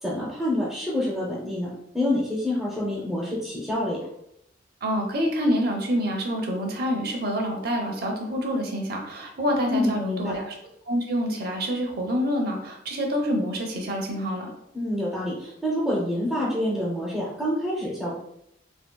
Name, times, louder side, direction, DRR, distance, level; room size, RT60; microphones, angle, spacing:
voice 1, 0.0-4.0 9.7-10.4 14.7-18.1, left 1 dB, 5° right, -6 dB, 0.5 m, -27 dB
voice 2, 4.8-10.5 10.9-14.5, equal, 55° right, 2 dB, 0.6 m, -27 dB
3.5 x 2.3 x 2.2 m, 0.76 s
head